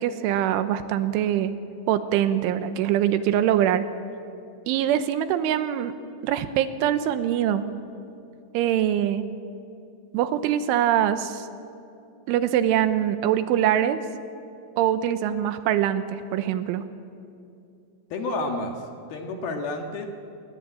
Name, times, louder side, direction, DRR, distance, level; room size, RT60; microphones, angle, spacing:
voice 1, 0.0-1.5 1.9-3.9 4.7-5.9 6.2-7.7 8.5-9.3 10.1-11.5 12.3-14.0 14.8-16.8, right 10 dB, 85° right, 11 dB, 3.4 m, -23 dB
voice 2, 18.1-20.1, left 2 dB, 60° left, 4 dB, 3.1 m, -30 dB
29.0 x 20.0 x 8.9 m, 2.6 s
omnidirectional pair, 5.6 m